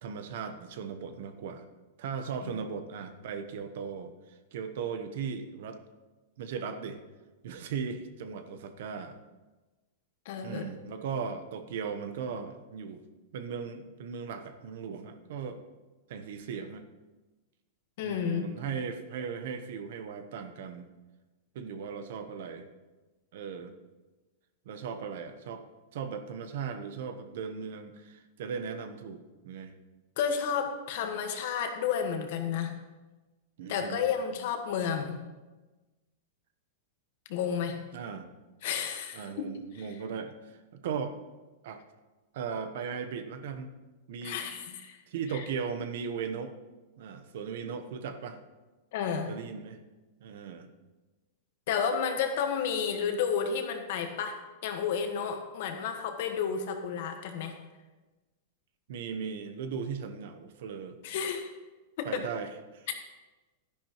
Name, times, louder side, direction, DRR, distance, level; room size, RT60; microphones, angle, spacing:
voice 1, 0.0-1.6 2.0-5.8 6.4-7.0 7.4-9.2 10.4-13.0 13.3-15.6 16.1-16.8 18.0-20.9 21.5-22.7 23.3-23.7 24.6-25.6 25.9-29.7 33.6-34.0 37.9-38.3 39.1-41.2 41.6-41.8 42.3-43.7 44.1-44.4 45.1-46.5 47.0-48.4 49.3-49.8 50.2-50.7 58.9-61.0 62.0-62.9, right 6 dB, 60° right, 9 dB, 1.0 m, -37 dB
voice 2, 10.2-10.6 18.0-18.5 30.2-32.7 33.7-35.2 37.3-37.8 38.6-39.5 44.2-45.0 45.3-45.4 48.9-49.3 51.7-57.5 61.0-61.5 62.0-62.2, left 7 dB, 55° left, 5 dB, 1.4 m, -31 dB
12.0 x 10.5 x 3.1 m, 1.2 s
supercardioid pair, 165°, 0 cm